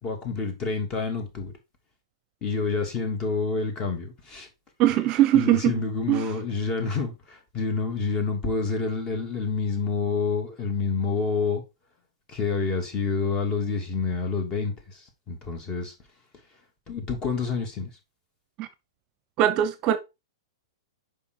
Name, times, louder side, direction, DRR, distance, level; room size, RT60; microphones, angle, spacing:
voice 1, 0.0-1.5 2.4-4.5 5.3-11.6 12.3-15.9 16.9-17.9, left 4 dB, 25° left, 2.8 m, -28 dB
voice 2, 4.8-5.7 6.1-6.3 18.6-18.7 19.4-20.0, right 13 dB, 35° right, 0.8 m, -21 dB
7.0 x 5.5 x 4.7 m
hypercardioid pair, 130°, 3 cm